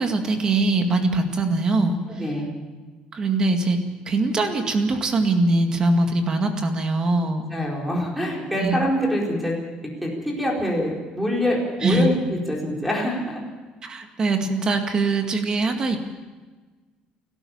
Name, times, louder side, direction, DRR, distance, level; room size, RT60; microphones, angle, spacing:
voice 1, 0.0-2.0 3.1-7.4 8.6-8.8 11.8-12.2 13.8-16.0, right 2 dB, 25° right, 5 dB, 2.1 m, -22 dB
voice 2, 2.1-2.5 7.5-9.5 10.0-13.4, equal, ahead, -2 dB, 4.6 m, -25 dB
29.5 x 13.0 x 7.2 m, 1.3 s
cardioid pair, 175°, 3 cm